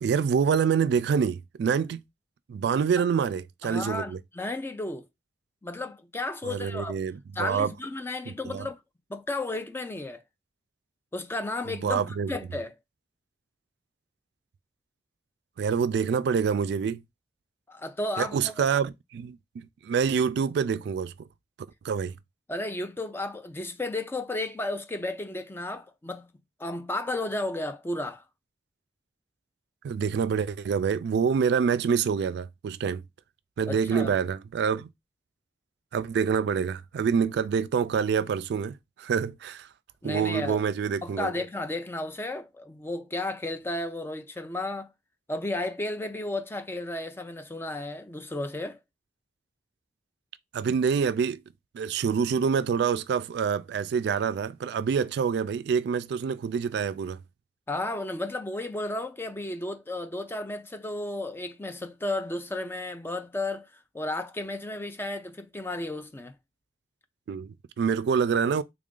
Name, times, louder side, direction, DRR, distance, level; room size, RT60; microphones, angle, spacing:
voice 1, 0.0-2.0 2.5-4.2 6.4-7.7 8.3-8.7 11.7-12.3 15.6-17.0 18.2-21.3 21.8-22.2 29.8-33.0 33.6-34.9 35.9-39.7 40.0-41.3 50.5-51.4 51.7-57.2 67.3-68.6, right 6 dB, 70° right, 0.3 m, -26 dB
voice 2, 3.6-5.0 5.6-6.9 7.3-8.8 9.1-10.2 11.1-12.0 12.3-12.7 17.7-18.7 22.5-26.3 26.6-28.2 33.7-34.1 40.0-40.6 41.0-44.9 45.3-48.8 57.7-63.7 63.9-66.3, left 2 dB, 15° left, 0.4 m, -33 dB
3.4 x 2.5 x 3.6 m
head